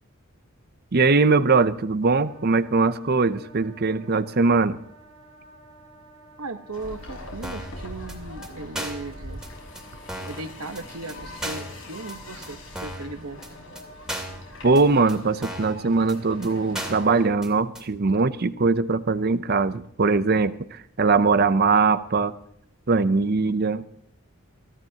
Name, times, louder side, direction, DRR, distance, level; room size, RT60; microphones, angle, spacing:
voice 1, 0.9-4.8 14.6-22.3 22.9-23.9, right 4 dB, 45° right, 12 dB, 0.6 m, -21 dB
Wind instrument woodwind instrument, 2.0-17.3, right 2 dB, 30° left, 4.7 m, -51 dB
voice 2, 6.4-9.4 10.2-13.4, right 2 dB, 80° right, 9 dB, 1.2 m, -37 dB
sound 1, 6.7-17.3, left 1 dB, 60° left, 6.4 m, -42 dB
sound 2, 7.4-7.8 8.1-8.2 8.4-8.5 8.8-9.1 9.4-9.5 9.8-9.9 10.1-10.4 10.8-10.9 11.1-11.2 11.4-11.7 12.1-12.2 12.4-12.5 12.8-13.1 13.4-13.5 13.8-13.9 14.1-14.4 14.8-14.9 15.1-15.2 15.4-15.8 16.1-16.2 16.4-16.5 16.7-17.1 17.4-17.5 17.8-17.9, right 1 dB, 5° right, 2.5 m, -34 dB
24.5 x 14.5 x 2.9 m, 0.71 s
head